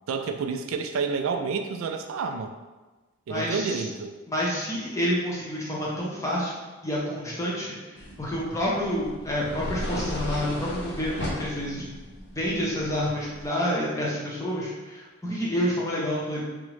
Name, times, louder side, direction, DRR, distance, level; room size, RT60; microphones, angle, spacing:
voice 1, 0.1-2.5 3.3-4.1, right 5 dB, 70° right, 6 dB, 0.3 m, -29 dB
voice 2, 3.3-3.8 4.3-11.9 12.3-16.4, equal, 15° left, -5 dB, 0.6 m, -29 dB
sound 1, 8.0-13.5, equal, 55° left, 0.7 m, -36 dB
3.5 x 2.0 x 3.1 m, 1.2 s
head